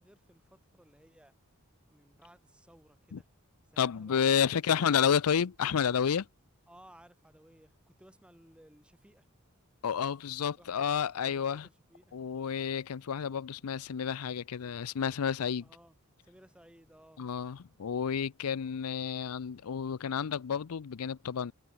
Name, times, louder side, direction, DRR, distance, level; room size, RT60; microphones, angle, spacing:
voice 1, 0.0-1.3 1.9-3.3 3.7-5.1 6.7-9.3 10.6-11.6 11.9-12.1 15.6-15.9 16.2-17.2, right 1 dB, 5° right, 1.5 m, -59 dB
voice 2, 3.8-6.3 9.8-11.7 12.1-15.7 17.2-21.5, left 7 dB, 85° left, 0.5 m, -30 dB
head